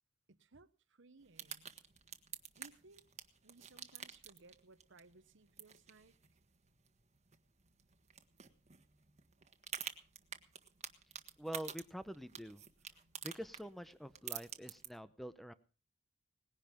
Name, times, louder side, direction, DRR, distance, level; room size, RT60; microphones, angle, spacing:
voice 1, 0.3-1.8 2.5-3.0 3.4-6.2, right 3 dB, 65° right, 1.1 m, -62 dB
sound 1, 1.2-14.9, right 8 dB, 35° right, 1.5 m, -51 dB
voice 2, 11.4-12.6 13.2-15.5, equal, ahead, 0.8 m, -46 dB
19.5 x 11.0 x 5.2 m
head